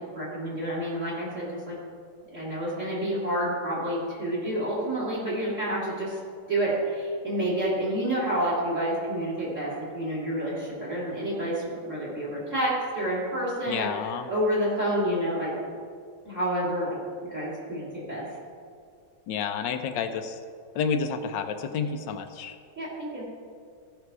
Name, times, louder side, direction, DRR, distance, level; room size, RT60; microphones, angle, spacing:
voice 1, 0.0-1.8 2.3-6.2 6.5-15.5 16.2-17.0 17.2-18.3 22.8-23.3, right 1 dB, 35° right, -6 dB, 3.0 m, -29 dB
voice 2, 13.7-14.3 19.3-20.4 20.7-22.6, left 6 dB, 70° left, 8 dB, 1.2 m, -30 dB
15.0 x 5.8 x 4.8 m, 2.2 s
omnidirectional pair, 2.2 m